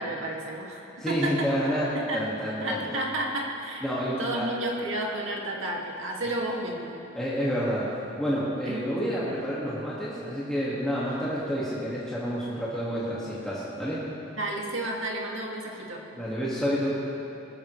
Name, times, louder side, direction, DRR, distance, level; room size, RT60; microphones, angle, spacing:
voice 1, 0.0-1.5 1.9-2.2 2.6-3.9 4.2-7.0 8.7-8.9 14.4-16.0, right 1 dB, 80° right, -1 dB, 2.2 m, -31 dB
voice 2, 1.0-2.8 3.8-4.5 7.1-14.0 16.2-16.9, equal, 5° left, -10 dB, 1.9 m, -29 dB
20.5 x 14.5 x 3.2 m, 2.8 s
head